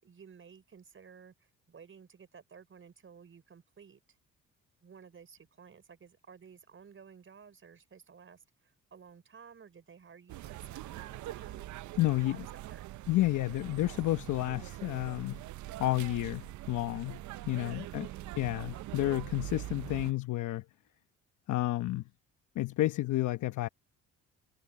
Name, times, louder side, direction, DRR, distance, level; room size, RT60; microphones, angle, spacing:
voice 1, 0.0-4.0 4.8-11.7 12.2-12.9 17.6-18.3, right 6 dB, 45° right, 4.8 m, -54 dB
sound 1, 10.3-20.1, right 15 dB, 75° right, 0.6 m, -43 dB
voice 2, 12.0-12.5 13.1-15.4 15.8-18.1 18.4-20.6 21.5-22.0 22.5-23.7, left 16 dB, 80° left, 1.0 m, -31 dB
cardioid pair, 90°, 30 cm